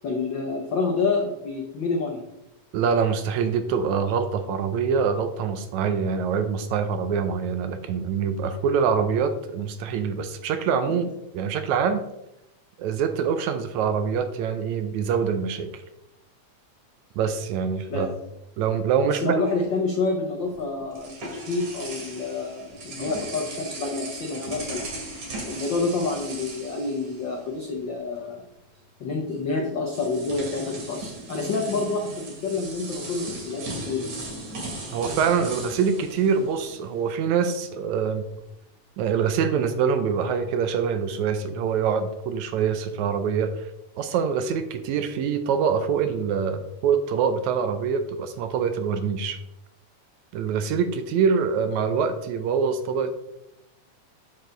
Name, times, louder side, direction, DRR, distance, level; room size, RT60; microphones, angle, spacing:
voice 1, 0.0-2.2 10.9-11.0 17.9-18.1 19.1-24.9 25.4-28.4 29.0-34.2, left 3 dB, 75° left, 1 dB, 1.0 m, -28 dB
voice 2, 2.7-11.1 11.3-12.0 12.8-15.7 17.2-18.1 18.6-19.4 34.9-38.3 39.0-43.7 44.0-49.4 50.3-53.1, right 6 dB, 75° right, 9 dB, 1.9 m, -25 dB
sound 1, 20.4-27.7 28.0-28.2 29.3-29.4 29.9-37.0, right 2 dB, 60° right, 3.2 m, -37 dB
8.3 x 6.6 x 3.9 m, 0.85 s
omnidirectional pair, 3.5 m